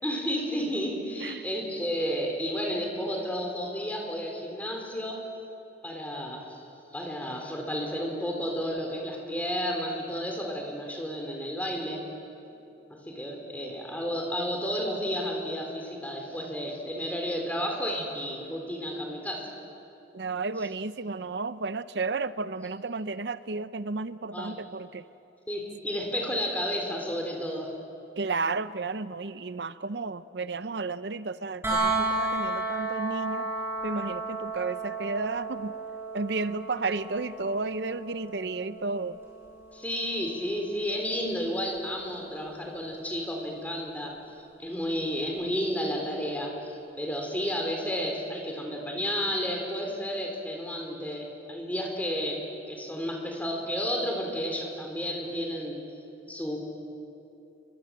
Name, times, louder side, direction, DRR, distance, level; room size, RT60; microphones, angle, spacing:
voice 1, 0.0-5.2 5.8-6.6 6.9-12.0 12.9-19.5 24.3-24.6 25.5-27.7 39.7-44.1 44.6-55.8 56.3-56.6, equal, 10° left, 1 dB, 4.0 m, -32 dB
voice 2, 20.1-25.1 28.2-33.5 33.8-35.7 36.1-39.2, right 3 dB, 65° right, 13 dB, 0.7 m, -32 dB
sound 1, 31.6-43.4 45.4-45.5, right 2 dB, 15° right, 7.5 m, -34 dB
30.0 x 24.5 x 7.6 m, 2.8 s
head